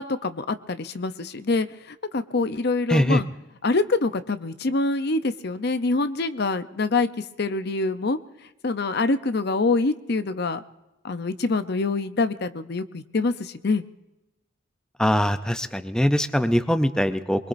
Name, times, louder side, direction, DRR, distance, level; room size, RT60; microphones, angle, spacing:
voice 1, 0.0-3.3 3.6-8.2 8.6-10.6 11.0-13.8, left 3 dB, 55° left, 11 dB, 0.7 m, -25 dB
voice 2, 2.9-3.2 15.0-17.5, equal, 5° left, 8 dB, 0.6 m, -22 dB
24.0 x 22.5 x 2.6 m, 0.97 s
head